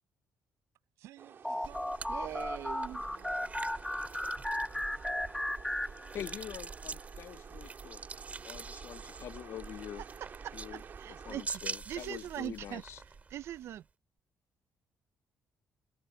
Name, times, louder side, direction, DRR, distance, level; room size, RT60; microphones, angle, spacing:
voice 1, 1.0-3.9 4.9-5.1, right 15 dB, 90° right, 7.1 m, -58 dB
sound 1, 1.2-11.5, right 7 dB, 50° right, 4.5 m, -53 dB
sound 2, 1.4-6.6, left 1 dB, 5° left, 0.5 m, -36 dB
sound 3, 1.6-13.8, right 4 dB, 30° right, 2.3 m, -45 dB
voice 2, 2.1-3.0 10.4-11.6 11.9-12.8 13.3-13.8, right 11 dB, 70° right, 0.6 m, -41 dB
voice 3, 6.1-8.0 8.4-10.0 10.5-13.0, left 10 dB, 65° left, 0.5 m, -45 dB
cardioid pair, 95°, 5 cm